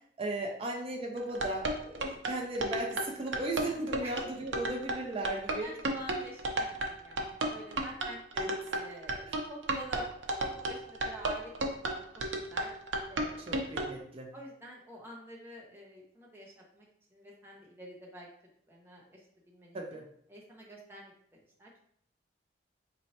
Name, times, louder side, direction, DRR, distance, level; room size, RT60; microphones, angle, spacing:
voice 1, 0.2-5.7 8.4-8.5 13.5-14.3 19.7-20.0, right 2 dB, 30° right, 0 dB, 0.5 m, -36 dB
sound 1, 1.2-13.9, right 2 dB, 80° right, 0.6 m, -33 dB
voice 2, 5.6-8.2 8.6-10.1 10.4-12.7 13.1-13.4 14.3-18.3 18.7-19.2 19.5-19.8 20.3-21.7, right 1 dB, 10° right, -3 dB, 0.8 m, -48 dB
4.2 x 3.1 x 2.8 m, 0.65 s
head